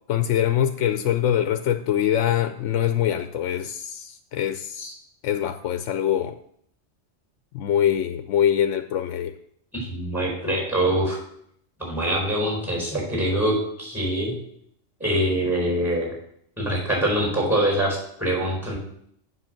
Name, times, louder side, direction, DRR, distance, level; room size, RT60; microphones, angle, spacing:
voice 1, 0.1-4.9 5.2-6.3 7.5-9.3, left 10 dB, 85° left, 9 dB, 0.9 m, -23 dB
voice 2, 9.7-11.2 11.8-14.4 15.0-16.1 16.6-18.8, right 1 dB, ahead, -2 dB, 4.4 m, -24 dB
7.5 x 5.7 x 7.5 m, 0.69 s
omnidirectional pair, 1.2 m